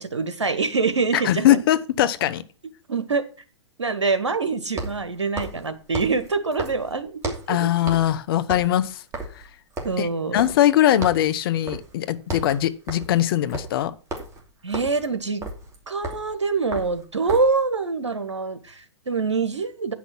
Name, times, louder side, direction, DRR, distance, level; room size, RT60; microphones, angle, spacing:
voice 1, 0.0-1.6 2.9-3.2 3.8-7.7 9.8-10.4 14.6-15.4 15.9-19.9, right 4 dB, 85° right, 9 dB, 1.5 m, -25 dB
voice 2, 1.1-2.4 7.5-9.0 10.0-13.9, left 12 dB, 55° left, 15 dB, 0.9 m, -21 dB
sound 1, 4.7-7.6 7.9-8.2 8.4-10.8 11.0-11.3 11.7-11.9 12.2-17.6, right 2 dB, 20° right, 2.8 m, -35 dB
9.8 x 6.0 x 6.0 m, 0.36 s
figure-of-eight pair, 110°, 15 cm